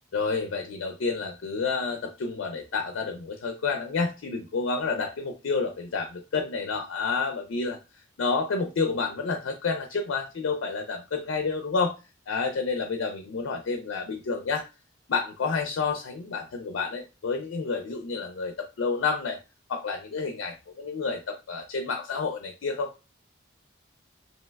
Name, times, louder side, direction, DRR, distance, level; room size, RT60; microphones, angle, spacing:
voice 1, 0.1-7.8 8.2-11.9 12.3-14.7 15.1-19.4 19.7-22.9, left 4 dB, 80° left, 4 dB, 0.4 m, -29 dB
3.2 x 2.7 x 2.2 m, 0.28 s
head